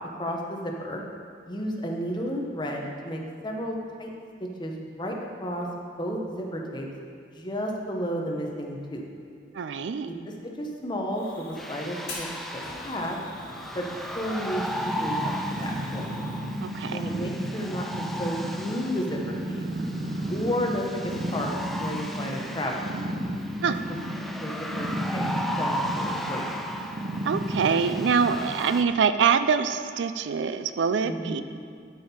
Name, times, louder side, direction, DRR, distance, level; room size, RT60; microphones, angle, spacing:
voice 1, 0.2-1.0 1.4-4.1 4.4-5.7 6.0-6.9 7.3-9.0 10.1-13.2 13.7-13.9 14.1-16.0 16.8-17.8 18.2-19.7 20.3-22.8 24.1-25.3 25.6-26.8 31.0-31.4, equal, 25° left, 0 dB, 1.0 m, -32 dB
voice 2, 9.5-10.1 16.6-17.0 23.6-23.8 27.2-31.4, right 6 dB, 70° right, 11 dB, 0.4 m, -24 dB
Fire, 11.1-16.4, left 2 dB, 55° left, 2.5 m, -43 dB
sound 1, 11.6-28.8, equal, ahead, 0.4 m, -36 dB
Purr, 14.0-28.8, right 1 dB, 50° right, 0.9 m, -33 dB
12.5 x 5.5 x 4.3 m, 2.2 s
head